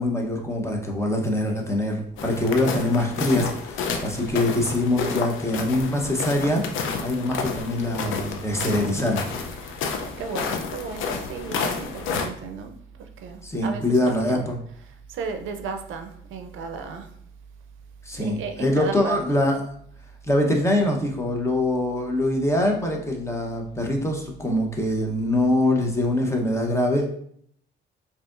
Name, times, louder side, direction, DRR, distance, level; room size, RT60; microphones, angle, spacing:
voice 1, 0.0-6.6 7.0-9.3 13.4-14.6 18.0-19.6 20.2-27.1, left 1 dB, 15° left, 1 dB, 0.8 m, -24 dB
sound 1, 2.2-12.3, left 5 dB, 80° left, 0.6 m, -30 dB
voice 2, 8.6-8.9 9.5-9.8 10.2-17.1 18.2-19.2, right 5 dB, 80° right, 7 dB, 0.5 m, -35 dB
4.8 x 2.8 x 2.5 m, 0.65 s
cardioid pair, 90°, 20 cm